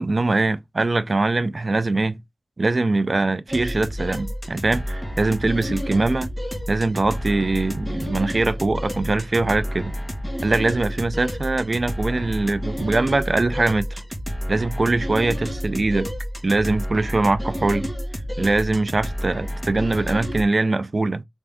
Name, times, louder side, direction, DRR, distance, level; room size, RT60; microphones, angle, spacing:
voice 1, 0.0-2.2 2.6-6.3 6.7-9.9 10.4-14.0 14.5-16.1 16.4-17.9 18.4-21.2, right 2 dB, 35° right, 0.4 m, -22 dB
sound 1, 3.5-20.4, equal, ahead, 1.2 m, -30 dB
3.5 x 3.4 x 3.4 m
wide cardioid pair, 100°, 0 cm